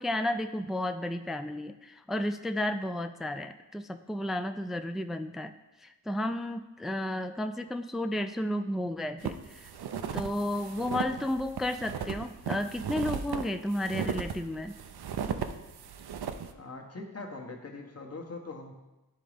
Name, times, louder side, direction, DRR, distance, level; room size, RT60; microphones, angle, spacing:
voice 1, 0.0-5.5 5.8-9.7 10.1-14.8, left 1 dB, ahead, 9 dB, 0.3 m, -32 dB
sound 1, 9.2-16.5, right 7 dB, 80° right, 0.5 m, -36 dB
voice 2, 16.5-18.7, left 3 dB, 40° left, 1 dB, 1.2 m, -42 dB
10.5 x 3.7 x 3.4 m, 1.0 s
cardioid pair, 40°, 38 cm